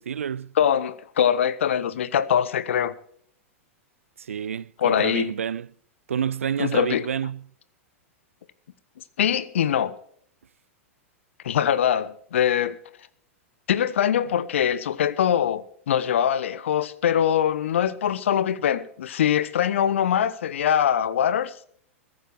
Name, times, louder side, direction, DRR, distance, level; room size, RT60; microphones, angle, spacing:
voice 1, 0.0-0.5 4.2-5.7 6.1-7.4, right 8 dB, 70° right, 0.4 m, -28 dB
voice 2, 0.6-2.9 4.8-5.3 6.6-7.0 9.2-9.9 11.4-12.8 13.7-21.5, left 9 dB, 60° left, 1.1 m, -23 dB
22.0 x 9.6 x 4.5 m
figure-of-eight pair, 100°, 8 cm